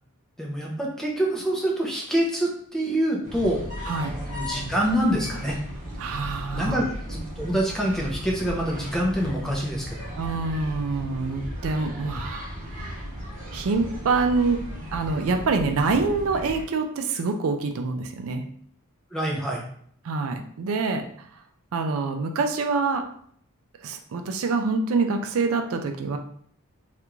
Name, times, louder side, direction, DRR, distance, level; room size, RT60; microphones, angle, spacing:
voice 1, 0.4-3.6 4.0-5.6 6.5-10.1 19.1-19.6, right 1 dB, ahead, -2 dB, 0.6 m, -26 dB
sound 1, 3.2-16.6, equal, 35° right, 1.2 m, -36 dB
voice 2, 6.0-6.9 10.2-13.0 13.5-14.6 14.9-18.5 20.0-21.3 21.7-23.0 23.8-26.2, right 4 dB, 65° right, 6 dB, 0.4 m, -26 dB
3.4 x 2.4 x 2.9 m, 0.63 s
head